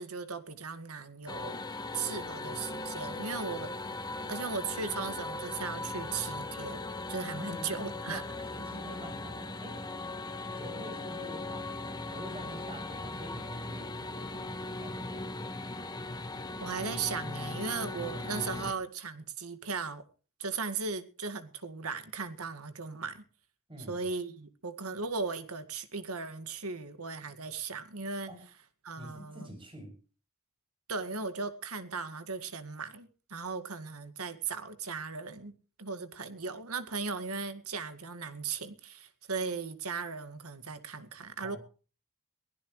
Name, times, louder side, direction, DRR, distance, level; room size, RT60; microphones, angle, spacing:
voice 1, 0.0-1.6 1.9-3.9 4.3-6.8 7.1-8.2 16.6-20.0 20.4-23.2 23.9-28.3 28.8-29.5 30.9-35.5 35.8-41.6, right 4 dB, 80° right, 2.0 m, -37 dB
sound 1, 1.3-18.7, left 2 dB, 20° left, 1.6 m, -39 dB
voice 2, 7.2-10.0 10.6-15.6 23.7-24.0 28.3-28.4 29.0-29.9 41.4-41.6, equal, 25° right, 7.0 m, -47 dB
22.5 x 16.5 x 3.2 m
head